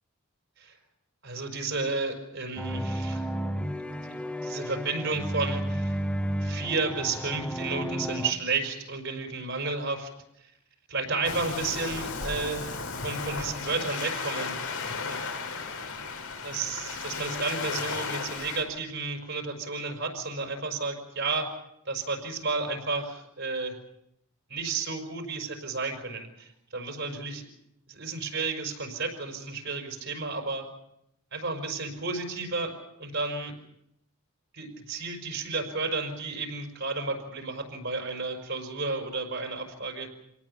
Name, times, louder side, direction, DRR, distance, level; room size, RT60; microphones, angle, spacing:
voice 1, 1.2-3.3 4.1-4.2 4.4-6.0 6.4-10.1 10.4-10.5 10.9-14.7 15.1-15.2 16.4-21.5 21.9-23.8 24.5-27.5 27.9-30.7 31.3-32.7 33.0-33.5 34.5-40.1, right 3 dB, 55° right, 4 dB, 5.4 m, -32 dB
sound 1, 2.6-8.3, equal, 5° left, 1.5 m, -32 dB
Waves surf, 11.2-18.6, left 4 dB, 75° left, 4.6 m, -34 dB
27.5 x 18.5 x 7.2 m, 0.79 s
head